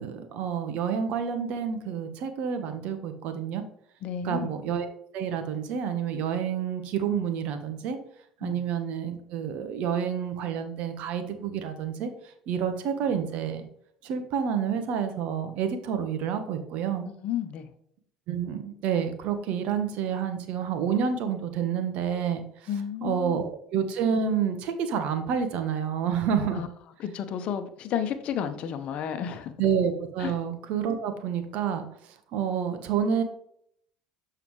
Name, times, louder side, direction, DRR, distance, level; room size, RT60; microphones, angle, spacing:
voice 1, 0.0-3.6 4.2-4.8 5.1-8.0 8.4-12.1 12.5-13.7 14.0-17.0 18.3-22.4 23.0-26.6 29.6-31.8 32.3-33.2, right 7 dB, 65° right, 1.2 m, -29 dB
voice 2, 4.0-4.5 8.4-8.7 17.0-17.7 22.7-23.5 26.5-26.7 27.0-29.5 30.2-30.3, left 8 dB, 55° left, 1.0 m, -32 dB
7.1 x 5.7 x 3.2 m
hypercardioid pair, 80°, 2 cm